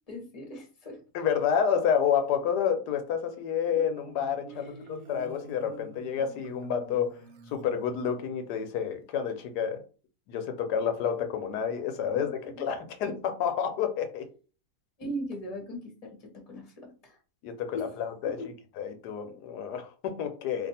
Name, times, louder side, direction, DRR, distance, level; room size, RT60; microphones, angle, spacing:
voice 1, 0.1-1.0 4.5-4.9 12.1-12.6 15.0-17.2 17.7-17.9 18.2-18.3, equal, 25° left, 2 dB, 0.9 m, -40 dB
voice 2, 1.1-7.2 7.5-9.8 10.3-14.3 17.4-18.4 18.8-20.7, left 8 dB, 80° left, 7 dB, 1.2 m, -29 dB
Marimba xylophone, 3.3-8.4, right 3 dB, 70° right, 0.9 m, -48 dB
2.7 x 2.6 x 4.1 m, 0.35 s
omnidirectional pair, 1.7 m